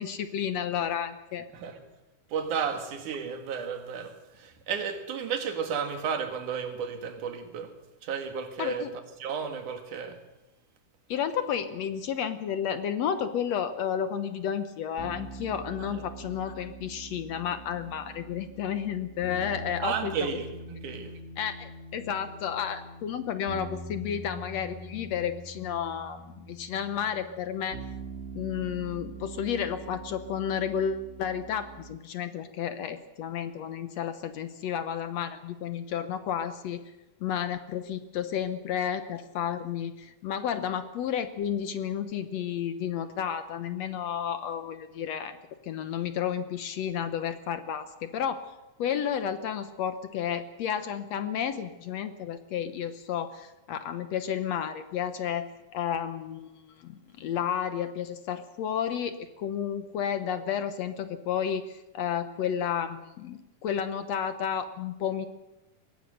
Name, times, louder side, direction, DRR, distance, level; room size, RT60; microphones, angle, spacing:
voice 1, 0.0-1.5 8.6-8.9 11.1-20.1 21.4-27.8 28.4-36.8 37.2-45.4 45.6-48.4 48.8-65.3, left 8 dB, 65° left, 1.9 m, -32 dB
voice 2, 2.3-7.7 8.0-8.9 9.2-10.2 15.8-16.0 19.8-21.1, right 7 dB, 75° right, 3.4 m, -33 dB
sound 1, 15.0-32.0, right 2 dB, 25° right, 2.0 m, -44 dB
23.0 x 19.5 x 6.5 m
omnidirectional pair, 3.6 m